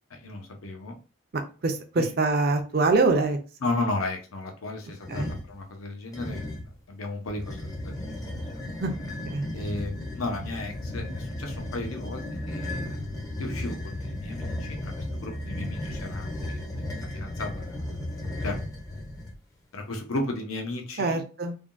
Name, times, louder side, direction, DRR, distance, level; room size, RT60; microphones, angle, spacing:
voice 1, 0.1-1.0 2.0-2.1 3.6-6.6 6.9-8.1 9.5-12.9 13.4-14.9 15.2-16.6 17.0-17.8 18.4-18.6 19.7-21.2, left 2 dB, 85° left, 3 dB, 0.7 m, -34 dB
voice 2, 1.6-3.4 5.1-5.3 8.8-8.9 9.3-9.5 21.0-21.6, right 3 dB, 45° right, 6 dB, 0.5 m, -24 dB
sound 1, 5.0-5.5 6.1-6.8 7.3-19.4, left 1 dB, 15° left, 0.5 m, -35 dB
3.4 x 2.2 x 2.4 m, 0.34 s
head